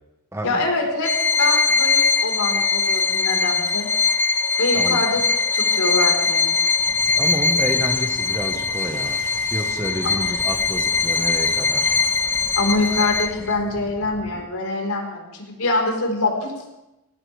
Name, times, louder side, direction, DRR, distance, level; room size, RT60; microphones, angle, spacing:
voice 1, 0.4-3.9 4.6-6.5 12.6-16.8, left 2 dB, 85° left, 1 dB, 4.6 m, -24 dB
Bowed string instrument, 1.0-13.5, left 4 dB, 10° left, 0.4 m, -21 dB
sound 1, 6.8-14.4, right 1 dB, 75° right, 2.6 m, -41 dB
voice 2, 7.2-9.2 9.5-11.9, equal, 10° right, 4 dB, 1.4 m, -29 dB
20.5 x 17.5 x 3.5 m, 0.95 s
head